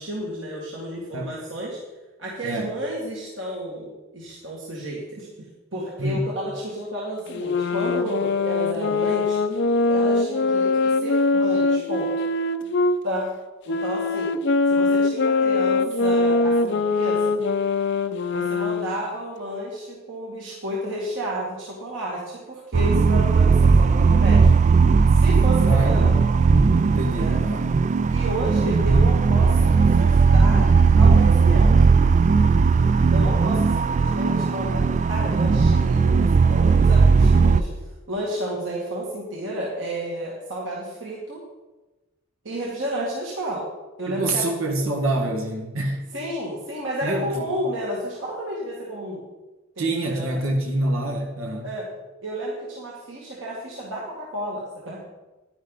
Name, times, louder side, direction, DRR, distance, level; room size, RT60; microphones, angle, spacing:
voice 1, 0.0-1.8 2.2-5.3 5.7-9.4 9.9-12.1 13.0-13.3 13.7-14.3 14.7-17.4 18.3-24.5 25.1-26.1 27.2-27.4 28.1-30.7 31.0-31.9 33.1-41.4 42.4-43.7 44.0-44.4 46.1-49.2 49.8-50.4 51.6-51.9 52.2-55.0, right 1 dB, 65° right, -4 dB, 2.2 m, -31 dB
voice 2, 2.4-2.7 6.0-6.3 25.6-26.0 26.9-27.7 44.1-46.0 47.0-47.4 49.8-51.7, right 1 dB, 85° right, 2 dB, 1.7 m, -26 dB
sound 1, 7.3-13.0 13.7-19.0, left 3 dB, 60° left, 0.6 m, -22 dB
sound 2, 22.7-37.6, right 4 dB, 35° right, 0.3 m, -17 dB
11.0 x 10.5 x 4.0 m, 1.1 s
head